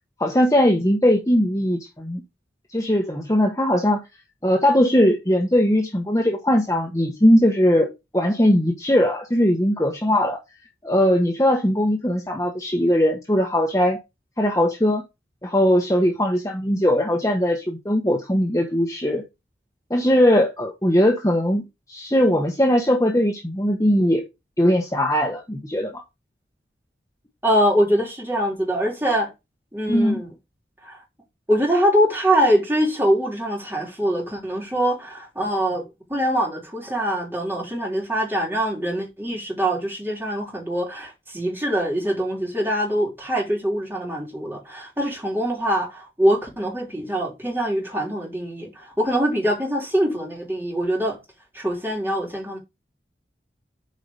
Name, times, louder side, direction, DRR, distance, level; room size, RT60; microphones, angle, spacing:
voice 1, 0.2-2.2 2.7-4.0 4.4-10.4 10.8-14.0 14.4-15.0 15.4-19.2 19.9-21.6 21.9-24.2 24.6-26.0 29.9-30.2, equal, 15° left, 1.2 m, -20 dB
voice 2, 27.4-29.3 29.7-30.3 30.8-31.0 31.5-51.2 51.5-52.6, equal, 10° right, 3.5 m, -23 dB
8.5 x 4.9 x 5.1 m
head